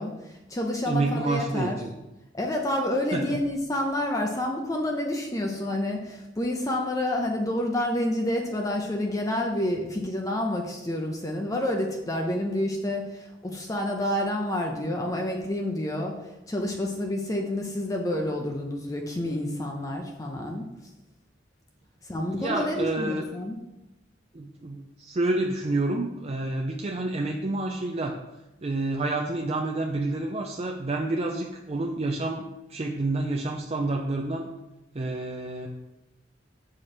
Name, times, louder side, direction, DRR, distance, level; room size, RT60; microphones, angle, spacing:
voice 1, 0.0-1.8 2.3-16.2 16.5-20.7 22.0-23.6, left 1 dB, 20° left, 1 dB, 0.6 m, -29 dB
voice 2, 0.9-1.9 3.1-3.4 22.3-23.3 24.3-28.2 28.6-34.5 34.9-35.7, right 2 dB, 35° right, 2 dB, 0.5 m, -29 dB
7.2 x 5.0 x 4.3 m, 0.98 s
head